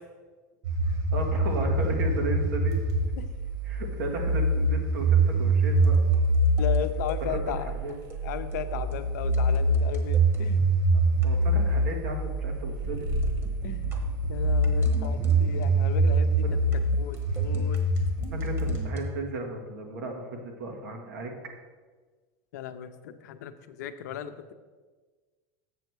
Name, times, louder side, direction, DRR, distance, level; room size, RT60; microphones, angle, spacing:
sound 1, 0.6-18.9, right 2 dB, 50° right, 2.0 m, -25 dB
voice 1, 1.1-2.7 3.6-6.0 7.3-7.9 10.9-13.0 18.3-21.3, right 2 dB, 80° right, 2 dB, 1.6 m, -35 dB
sound 2, 5.8-7.2 7.9-8.2 8.5-8.7 8.9-9.0 9.3-10.7 11.1-11.7 12.0-12.3 12.8-15.9 16.3-19.0, right 2 dB, 25° right, 1.2 m, -41 dB
voice 2, 6.6-7.7 8.2-10.6 13.6-14.0 14.3-16.4 17.0-17.8 22.5-24.5, left 9 dB, 85° left, 9 dB, 0.6 m, -36 dB
7.5 x 6.6 x 4.6 m, 1.4 s
supercardioid pair, 130°, 9 cm